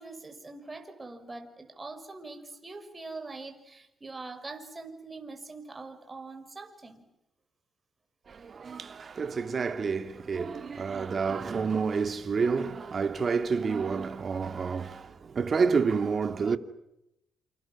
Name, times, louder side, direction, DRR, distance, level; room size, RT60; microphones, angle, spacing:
voice 1, 0.0-7.1, right 3 dB, 25° right, 5.8 m, -43 dB
voice 2, 8.3-16.6, right 5 dB, 45° right, 2.4 m, -29 dB
28.0 x 27.5 x 6.1 m
cardioid pair, 80°, 0 cm